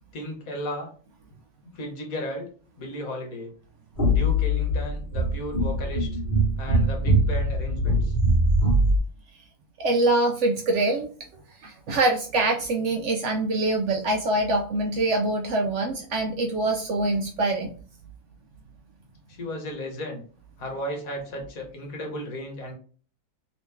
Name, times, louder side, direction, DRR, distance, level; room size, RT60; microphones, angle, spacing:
voice 1, 0.1-0.9 1.7-2.5 2.8-3.5 4.1-6.2 6.6-8.1 19.3-20.2 20.6-22.7, equal, 65° left, 2 dB, 1.4 m, -34 dB
sound 1, 4.0-9.0, equal, 35° left, 1.3 m, -22 dB
voice 2, 9.8-11.1 11.6-17.7, right 2 dB, 65° right, 3 dB, 0.7 m, -24 dB
3.1 x 2.9 x 3.3 m, 0.42 s
omnidirectional pair, 1.6 m